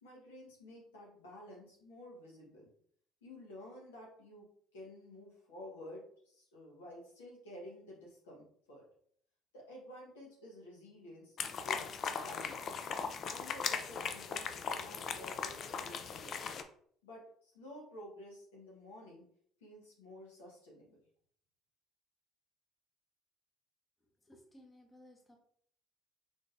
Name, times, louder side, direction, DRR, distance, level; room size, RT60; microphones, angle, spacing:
voice 1, 0.0-2.7 3.2-4.5 4.7-8.8 9.5-12.8 13.2-16.4 17.0-19.2 19.6-21.0, left 1 dB, 80° left, -3 dB, 1.2 m, -52 dB
sound 1, 11.4-16.6, left 6 dB, 50° left, 0.4 m, -39 dB
voice 2, 24.3-25.4, left 1 dB, 20° left, 3 dB, 1.0 m, -59 dB
3.7 x 3.5 x 2.6 m, 0.62 s
hypercardioid pair, 60°, 0 cm